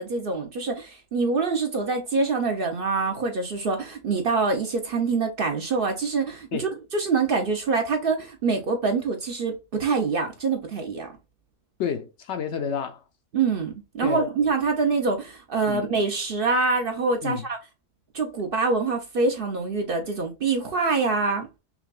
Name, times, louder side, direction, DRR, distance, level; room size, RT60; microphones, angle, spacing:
voice 1, 0.0-11.1 13.3-17.6 18.1-21.5, right 4 dB, 55° right, 0.7 m, -25 dB
voice 2, 11.8-13.0 14.0-14.3 15.7-15.8 17.2-17.4, left 7 dB, 65° left, 0.8 m, -29 dB
5.8 x 2.2 x 2.3 m
omnidirectional pair, 1.4 m